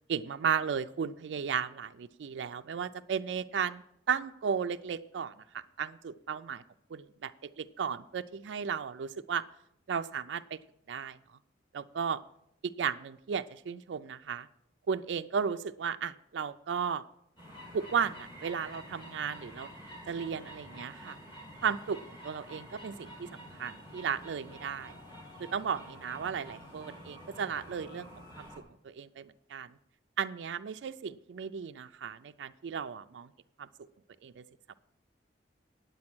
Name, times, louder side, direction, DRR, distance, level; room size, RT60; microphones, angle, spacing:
voice 1, 0.1-6.6 6.9-9.4 9.9-10.6 10.9-11.2 11.7-12.2 12.6-14.5 14.9-17.0 17.7-19.7 20.1-21.2 21.6-23.3 23.6-24.9 25.4-28.1 28.4-28.5 28.8-29.7 30.2-33.3 33.6-33.7 34.2-34.4, right 7 dB, 90° right, 9 dB, 0.4 m, -34 dB
sound 1, 17.4-28.6, equal, 30° left, 2.7 m, -49 dB
9.6 x 8.1 x 6.1 m, 0.77 s
head